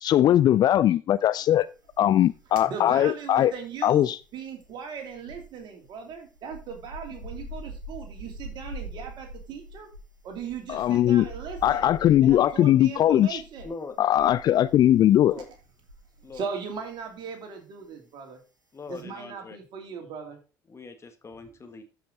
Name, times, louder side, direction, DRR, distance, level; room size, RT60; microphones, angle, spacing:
voice 1, 0.0-1.7 2.0-3.5 3.8-4.2 10.7-11.3 11.6-13.4 14.0-15.3, left 12 dB, 45° left, 17 dB, 0.4 m, -20 dB
sound 1, 1.8-2.7 2.9-16.5 16.7-17.0, right 1 dB, 90° right, 1.2 m, -43 dB
voice 2, 2.6-9.9 10.2-11.9 12.2-13.7 16.3-18.4 18.9-20.4, right 6 dB, 50° right, 4 dB, 2.8 m, -38 dB
voice 3, 13.6-14.0 15.2-15.5 16.2-16.5 18.7-19.6 20.7-21.8, left 4 dB, 25° left, 7 dB, 1.6 m, -41 dB
13.0 x 5.7 x 3.9 m, 0.33 s
figure-of-eight pair, 55°, 10 cm